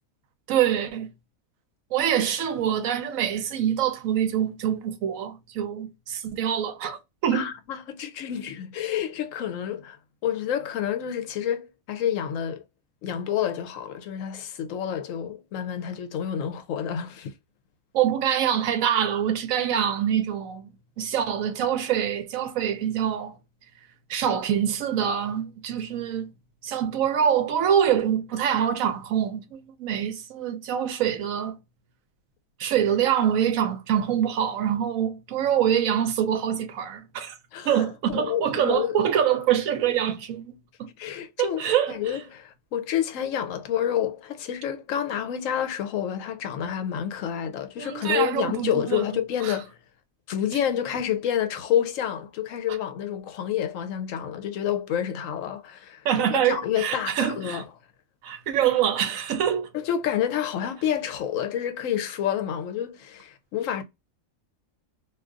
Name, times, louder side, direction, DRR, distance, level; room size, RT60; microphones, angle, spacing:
voice 1, 0.5-1.1 1.9-7.5 17.9-20.7 21.0-23.3 24.1-26.3 26.6-31.6 32.6-37.3 37.6-40.5 40.8-40.9 41.4-41.9 47.8-49.0 49.4-49.6 56.0-57.6 58.2-59.7, right 9 dB, 80° right, 1.0 m, -25 dB
voice 2, 7.3-10.0 10.2-12.6 13.0-17.3 37.5-39.0 41.0-49.8 50.3-57.6 59.7-63.8, left 9 dB, 75° left, 0.9 m, -29 dB
2.6 x 2.4 x 3.7 m
omnidirectional pair, 1.4 m